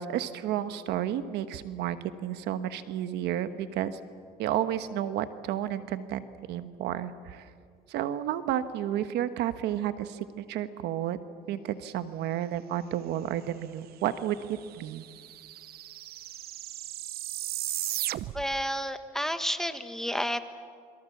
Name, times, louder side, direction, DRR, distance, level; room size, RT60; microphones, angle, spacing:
voice 1, 0.0-4.0 4.4-7.4 7.9-11.2 11.5-14.4 14.7-15.0, right 11 dB, 85° right, 11 dB, 1.2 m, -31 dB
sound 1, 14.1-14.2 14.4-18.6, right 14 dB, 65° right, 0.7 m, -36 dB
voice 2, 18.3-20.4, equal, 5° left, 9 dB, 1.4 m, -31 dB
29.0 x 23.5 x 7.3 m, 2.2 s
cardioid pair, 110°, 17 cm